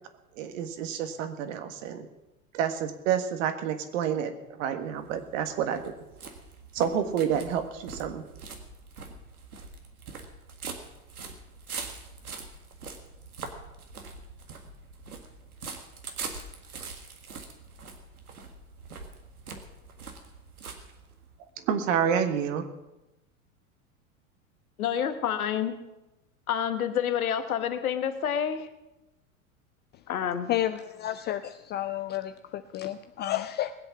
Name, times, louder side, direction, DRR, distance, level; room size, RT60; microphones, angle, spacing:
voice 1, 0.4-2.1 2.5-4.3 4.6-5.9 6.7-8.2 21.6-22.7, right 8 dB, 60° right, 8 dB, 1.7 m, -29 dB
sound 1, 4.9-21.4, right 4 dB, 85° right, 1.9 m, -43 dB
voice 2, 24.8-25.8 26.5-28.7 30.1-30.5, left 9 dB, 75° left, 8 dB, 1.4 m, -28 dB
voice 3, 30.5-33.7, left 13 dB, 25° left, 11 dB, 0.4 m, -31 dB
20.5 x 8.1 x 6.0 m, 0.99 s
hypercardioid pair, 90°, 43 cm